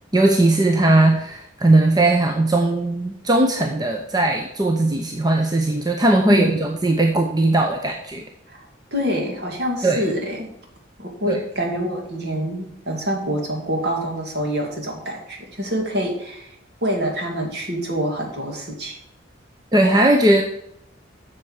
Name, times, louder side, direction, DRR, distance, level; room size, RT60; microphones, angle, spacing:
voice 1, 0.1-8.2 9.8-10.1 11.3-11.4 19.7-20.4, right 2 dB, 20° right, 2 dB, 0.8 m, -18 dB
voice 2, 6.3-6.6 8.5-10.5 11.0-16.5 16.8-18.9, equal, 55° right, 1 dB, 2.4 m, -26 dB
8.1 x 6.6 x 7.4 m, 0.75 s
head